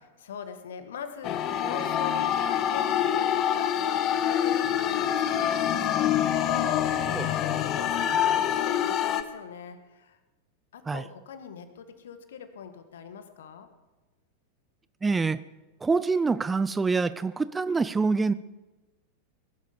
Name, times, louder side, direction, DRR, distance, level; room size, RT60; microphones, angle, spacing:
voice 1, 0.2-6.5 6.8-10.2 10.7-13.7, left 7 dB, 60° left, 9 dB, 1.6 m, -42 dB
sound 1, 1.2-9.2, left 10 dB, 35° left, 0.9 m, -26 dB
voice 2, 15.0-15.4 15.8-18.3, right 4 dB, 15° right, 15 dB, 0.4 m, -25 dB
19.5 x 11.5 x 5.4 m, 1.2 s
figure-of-eight pair, 90°, 0 cm